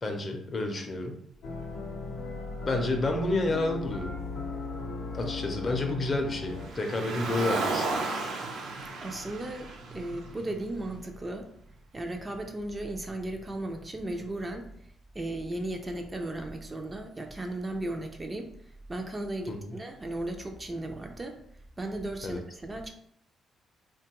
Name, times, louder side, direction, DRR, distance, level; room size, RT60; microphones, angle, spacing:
voice 1, 0.0-1.1 2.6-4.1 5.1-7.9 19.5-19.7 22.2-22.4, left 2 dB, 40° left, 3 dB, 0.5 m, -30 dB
sound 1, 1.4-6.7, left 3 dB, 80° left, 0.6 m, -37 dB
Car, 6.5-10.9, right 3 dB, 75° right, 0.5 m, -34 dB
voice 2, 9.0-11.5 11.9-14.7 15.1-18.5 18.9-21.4 21.8-22.9, right 1 dB, 25° right, 4 dB, 0.4 m, -35 dB
2.9 x 2.2 x 2.9 m, 0.67 s
cardioid pair, 90°, 0 cm